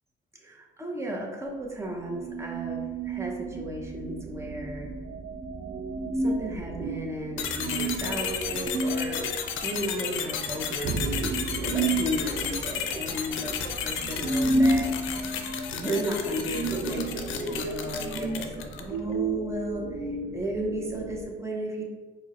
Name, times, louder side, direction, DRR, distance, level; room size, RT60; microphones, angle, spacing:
voice 1, 0.3-4.9 6.1-9.3 9.6-13.6 13.8-15.4 15.7-21.8, right 1 dB, 15° right, 0 dB, 0.7 m, -34 dB
sound 1, 2.1-21.2, right 2 dB, 65° right, 0.5 m, -32 dB
sound 2, 7.4-19.0, left 8 dB, 80° left, 0.4 m, -33 dB
4.4 x 2.1 x 3.0 m, 1.3 s
cardioid pair, 90°, 20 cm